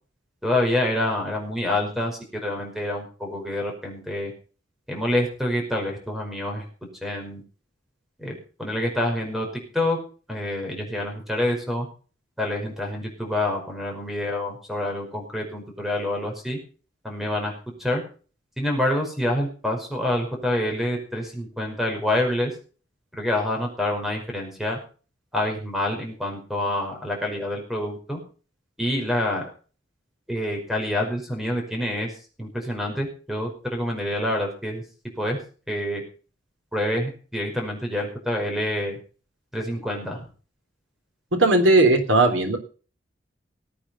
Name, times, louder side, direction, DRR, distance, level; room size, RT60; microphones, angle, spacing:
voice 1, 0.4-4.3 4.9-6.6 7.0-7.4 8.2-9.5 9.7-10.0 10.3-11.9 12.4-16.6 17.0-17.5 17.8-18.0 18.6-22.5 23.1-24.8 25.3-28.2 28.8-29.5 30.3-32.1 32.4-34.8 35.2-35.4 35.7-36.0 36.7-39.0 39.5-40.2, left 1 dB, ahead, 1 dB, 5.3 m, -27 dB
voice 2, 41.3-42.6, right 2 dB, 80° right, 5 dB, 3.5 m, -17 dB
18.5 x 8.9 x 5.7 m, 0.38 s
head